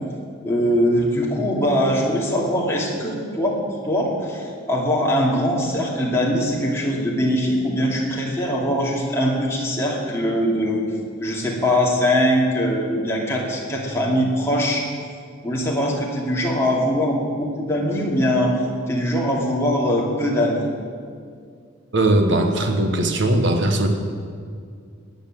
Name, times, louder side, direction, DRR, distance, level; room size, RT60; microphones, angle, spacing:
voice 1, 0.4-10.8 11.2-14.9 15.4-18.5 18.9-20.6, equal, 10° left, -3 dB, 2.6 m, -22 dB
voice 2, 21.9-23.9, right 1 dB, 55° right, 5 dB, 1.3 m, -19 dB
17.0 x 9.8 x 7.7 m, 2.2 s
head